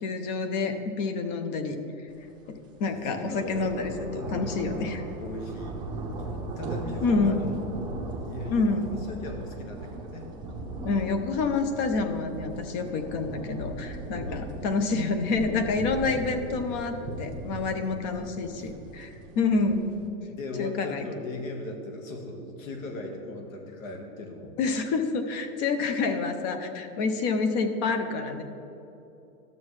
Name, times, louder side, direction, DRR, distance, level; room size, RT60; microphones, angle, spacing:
voice 1, 0.0-1.8 2.5-5.0 7.0-7.4 8.5-8.8 10.8-20.0 20.6-21.1 24.6-28.4, left 4 dB, 30° left, 8 dB, 0.6 m, -28 dB
sound 1, 2.3-2.4 2.8-20.1, right 2 dB, 10° right, 0.6 m, -38 dB
voice 2, 2.8-4.6 5.2-5.9 6.6-7.6 8.1-10.3 14.2-14.5 18.6-18.7 20.3-24.5, left 2 dB, 70° left, 3 dB, 1.6 m, -38 dB
12.5 x 7.3 x 3.2 m, 2.9 s
supercardioid pair, 155°, 42 cm